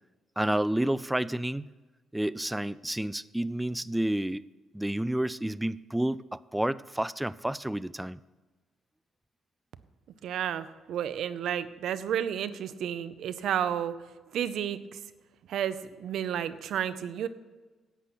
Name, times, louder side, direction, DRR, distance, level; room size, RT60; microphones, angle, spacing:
voice 1, 0.4-1.7 2.1-4.5 4.7-8.2, right 1 dB, 5° right, 17 dB, 0.4 m, -30 dB
voice 2, 10.2-13.9 14.3-15.0 15.5-17.3, right 9 dB, 75° right, 13 dB, 0.7 m, -31 dB
11.5 x 8.3 x 6.0 m, 1.3 s
cardioid pair, 90°, 0 cm